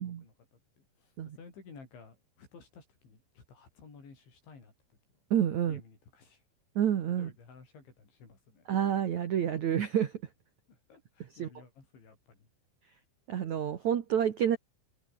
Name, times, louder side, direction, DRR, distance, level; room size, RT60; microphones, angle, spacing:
voice 1, 0.0-4.7 5.7-6.4 7.2-8.7 10.7-12.5, left 5 dB, 60° left, 9.7 m, -55 dB
voice 2, 5.3-5.8 6.7-7.3 8.7-10.1 11.3-11.5 13.3-14.6, right 9 dB, 80° right, 1.6 m, -29 dB
omnidirectional pair, 5.9 m